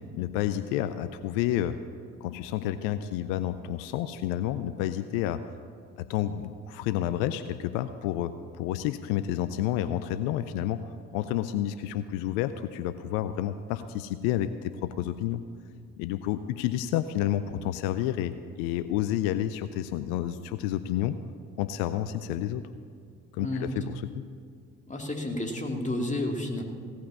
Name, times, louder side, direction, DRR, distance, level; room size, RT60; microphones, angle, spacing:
voice 1, 0.1-1.8 2.2-5.4 6.0-15.4 16.0-21.1 21.6-22.6 23.3-24.2, left 12 dB, 80° left, 11 dB, 0.5 m, -30 dB
voice 2, 23.4-23.8 24.9-26.6, left 1 dB, 20° left, 2 dB, 2.3 m, -31 dB
17.0 x 5.7 x 8.5 m, 2.2 s
hypercardioid pair, 45°, 37 cm